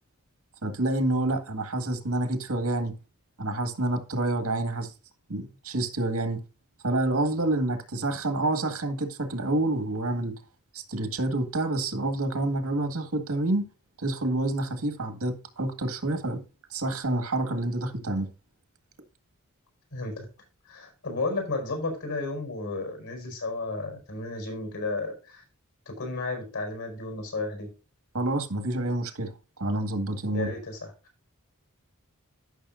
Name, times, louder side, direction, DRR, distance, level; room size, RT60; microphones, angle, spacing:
voice 1, 0.6-2.9 3.4-4.9 5.3-6.4 6.8-10.3 10.7-13.7 14.0-16.4 16.7-18.3 28.1-29.3 29.6-30.5, right 2 dB, 75° right, 1.9 m, -28 dB
voice 2, 19.9-20.2 20.6-25.4 25.8-27.7 30.3-30.9, left 2 dB, 85° left, 5.1 m, -33 dB
14.0 x 6.3 x 2.6 m
head